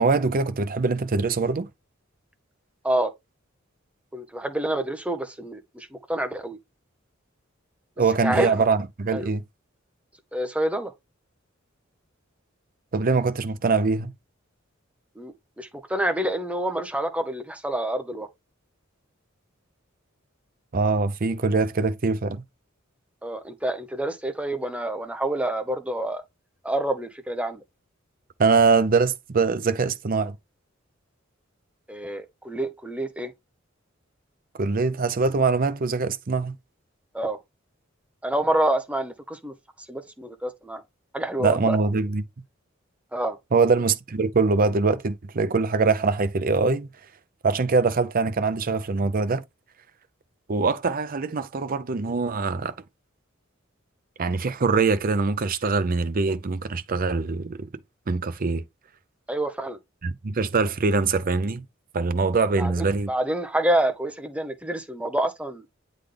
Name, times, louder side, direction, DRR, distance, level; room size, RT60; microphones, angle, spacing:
voice 1, 0.0-1.7 8.0-9.4 12.9-14.1 20.7-22.4 28.4-30.4 34.6-36.5 41.4-42.2 43.5-46.9 47.4-49.4 50.5-52.7 54.2-57.7 58.1-58.6 60.0-61.6 61.9-63.1, right 4 dB, 45° right, 0.6 m, -23 dB
voice 2, 4.1-6.6 8.2-8.5 9.1-9.3 10.3-10.9 15.2-18.3 23.2-26.2 26.6-27.6 31.9-33.3 37.1-37.4 38.2-39.5 39.9-40.8 41.1-41.8 43.1-43.4 59.3-59.8 62.6-65.6, right 1 dB, 5° right, 0.9 m, -27 dB
8.3 x 3.9 x 3.4 m
head